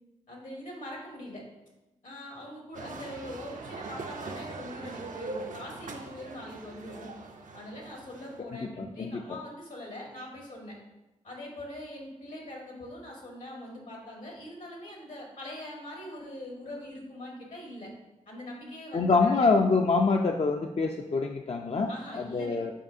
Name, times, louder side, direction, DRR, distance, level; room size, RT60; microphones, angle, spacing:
voice 1, 0.3-1.4 2.0-7.2 7.5-10.7 11.2-17.9 18.3-19.5 21.9-22.6, left 1 dB, 80° left, -1 dB, 1.7 m, -42 dB
sound 1, 2.7-8.4, right 3 dB, 75° right, 0.6 m, -41 dB
voice 2, 8.5-9.2 18.9-22.7, left 4 dB, 50° left, 3 dB, 0.4 m, -26 dB
7.5 x 4.8 x 2.7 m, 1.0 s
cardioid pair, 40°, 13 cm